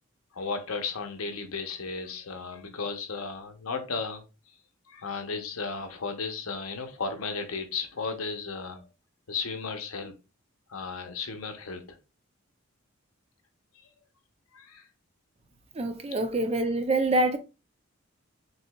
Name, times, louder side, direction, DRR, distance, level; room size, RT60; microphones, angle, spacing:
voice 1, 0.3-4.2 4.9-8.9 9.3-10.1 10.7-11.8 14.5-14.8, left 4 dB, 85° left, 0.8 m, -34 dB
voice 2, 15.7-17.4, right 2 dB, 30° right, 0.4 m, -25 dB
6.3 x 2.7 x 2.3 m
head